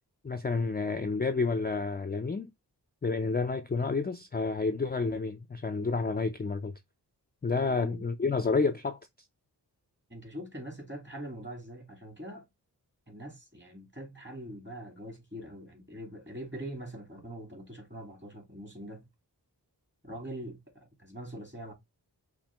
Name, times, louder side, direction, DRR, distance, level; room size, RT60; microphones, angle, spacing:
voice 1, 0.2-2.5 3.0-6.7 7.4-9.0, left 4 dB, 25° left, 0.4 m, -30 dB
voice 2, 7.5-8.1 10.1-12.5 13.1-19.1 20.0-21.7, right 1 dB, 25° right, 2.3 m, -43 dB
5.7 x 2.6 x 3.4 m
wide cardioid pair, 45°, 41 cm